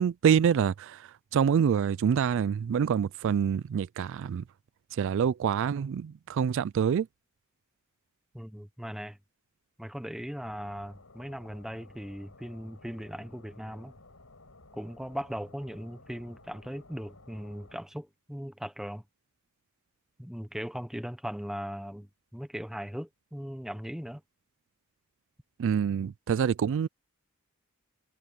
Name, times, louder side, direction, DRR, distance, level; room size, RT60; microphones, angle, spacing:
voice 1, 0.0-4.4 4.9-7.1 25.6-26.9, right 7 dB, 60° right, 0.3 m, -26 dB
voice 2, 8.3-9.2 9.8-13.9 14.7-19.0 20.2-24.2, equal, ahead, 1.0 m, -39 dB
sound 1, 10.4-17.8, left 2 dB, 75° left, 5.1 m, -55 dB
head